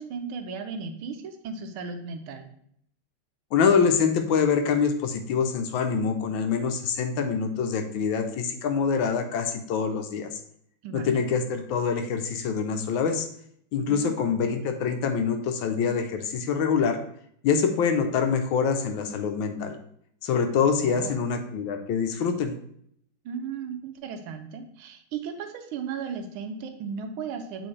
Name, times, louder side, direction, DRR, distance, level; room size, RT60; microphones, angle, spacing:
voice 1, 0.0-2.5 10.8-11.2 13.9-14.1 20.8-21.2 23.2-27.7, right 6 dB, 90° right, 6 dB, 1.6 m, -35 dB
voice 2, 3.5-10.4 10.9-13.3 13.7-17.0 17.4-19.8 20.2-22.5, left 6 dB, 75° left, 6 dB, 1.4 m, -25 dB
7.8 x 3.8 x 3.2 m, 0.67 s
omnidirectional pair, 2.2 m